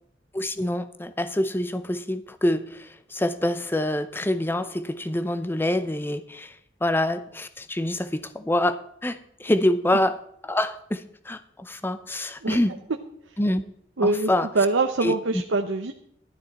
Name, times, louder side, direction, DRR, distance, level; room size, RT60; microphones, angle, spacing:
voice 1, 0.3-6.6 6.8-10.2 10.4-12.7 13.4-13.6 14.0-14.5 15.0-15.1, left 1 dB, 10° left, 11 dB, 0.5 m, -26 dB
voice 2, 14.0-14.3 14.5-15.9, right 3 dB, 85° right, 5 dB, 0.8 m, -23 dB
13.5 x 12.0 x 4.2 m, 0.68 s
head